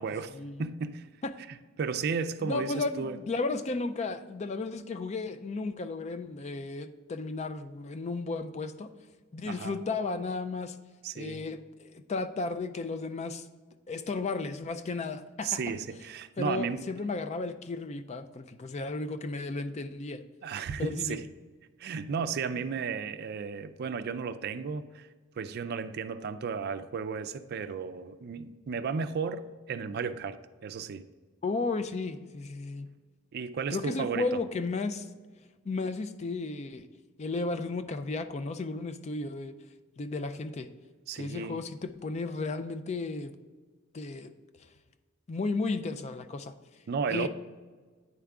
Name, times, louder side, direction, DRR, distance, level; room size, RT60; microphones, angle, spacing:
voice 1, 0.0-1.1 1.5-3.2 9.5-9.8 11.0-11.5 15.4-16.9 20.4-21.3 21.8-25.1 25.4-31.1 33.3-34.4 41.1-41.6 46.9-47.3, right 5 dB, 55° right, 0.4 m, -34 dB
voice 2, 2.4-8.9 9.3-10.8 11.1-13.5 13.9-15.6 16.4-20.2 20.8-21.2 31.4-32.9 33.7-35.1 35.7-36.9 37.2-39.5 40.0-40.7 41.2-43.3 43.9-44.3 45.3-46.5 47.1-47.3, left 3 dB, 35° left, 0.4 m, -34 dB
9.5 x 3.5 x 3.6 m
head